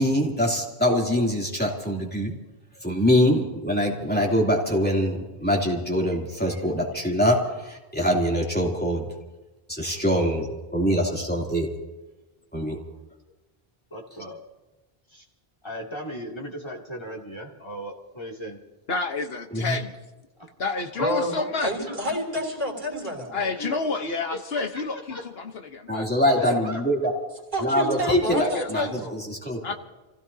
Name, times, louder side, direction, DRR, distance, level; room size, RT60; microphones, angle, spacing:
voice 1, 0.0-2.3 2.8-9.1 9.7-11.7 12.5-12.8 19.5-19.8 25.9-27.1 27.6-28.9 29.1-29.7, equal, 10° left, 2.9 m, -24 dB
voice 2, 13.9-14.4 15.1-15.2 15.6-18.6 20.4-20.5 21.9-22.0 23.5-23.8 24.0-25.2 26.4-26.8, equal, 25° left, 2.8 m, -37 dB
voice 3, 18.9-20.0 20.6-21.7 23.3-26.1 26.5-26.6 28.0-28.9 29.6-29.7, left 3 dB, 75° left, 1.3 m, -30 dB
voice 4, 21.0-23.5 27.5-29.2, equal, 50° right, 3.5 m, -29 dB
29.5 x 16.5 x 2.8 m
omnidirectional pair, 1.0 m